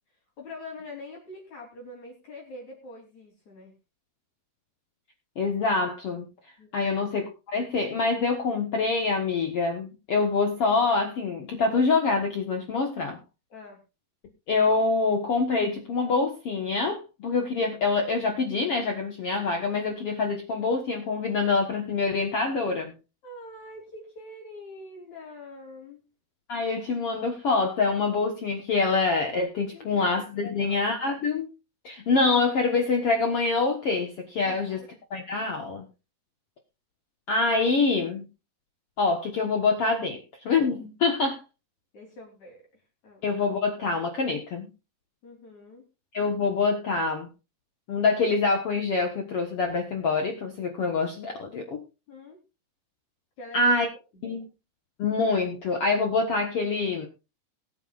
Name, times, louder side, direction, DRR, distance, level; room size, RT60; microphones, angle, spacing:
voice 1, 0.4-3.7 6.6-6.9 13.5-13.8 23.2-26.0 29.7-30.8 34.4-34.9 41.9-42.6 43.0-43.2 45.2-45.8 52.1-52.4 53.4-53.7 54.1-54.4, left 2 dB, 45° left, 4.4 m, -44 dB
voice 2, 5.4-6.3 6.7-13.2 14.5-22.9 26.5-31.5 31.8-34.8 35.1-35.8 37.3-38.3 39.0-41.4 43.2-44.7 46.1-47.3 47.9-51.8 53.5-53.9 54.2-54.5 55.0-57.1, left 4 dB, 85° left, 1.2 m, -25 dB
21.0 x 9.2 x 2.5 m
omnidirectional pair, 4.9 m